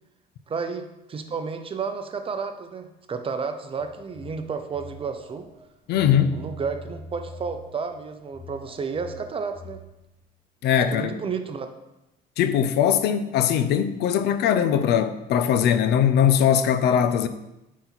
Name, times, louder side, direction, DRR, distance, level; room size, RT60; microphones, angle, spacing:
voice 1, 0.5-5.5 6.3-9.8 10.9-11.7, right 5 dB, 35° right, 0.7 m, -31 dB
Telephone, 3.8-5.6 5.9-10.0, left 1 dB, 50° left, 2.1 m, -43 dB
voice 2, 5.9-6.4 10.6-11.1 12.4-17.3, left 9 dB, 75° left, 0.6 m, -20 dB
8.6 x 4.2 x 4.1 m
cardioid pair, 110°, 17 cm